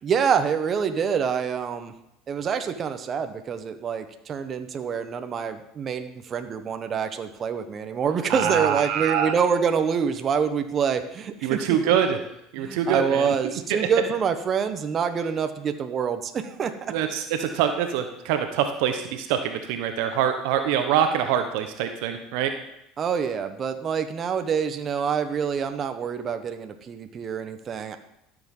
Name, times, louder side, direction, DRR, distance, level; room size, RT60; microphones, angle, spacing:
voice 1, 0.0-1.9 2.3-11.6 12.6-16.9 23.0-28.0, right 6 dB, 40° right, 8 dB, 1.2 m, -26 dB
voice 2, 8.3-9.3 11.4-12.2 12.5-13.3 13.7-13.8 16.9-22.5, right 9 dB, 75° right, 7 dB, 1.1 m, -24 dB
13.0 x 7.2 x 5.5 m, 0.80 s
supercardioid pair, 95°, 0 cm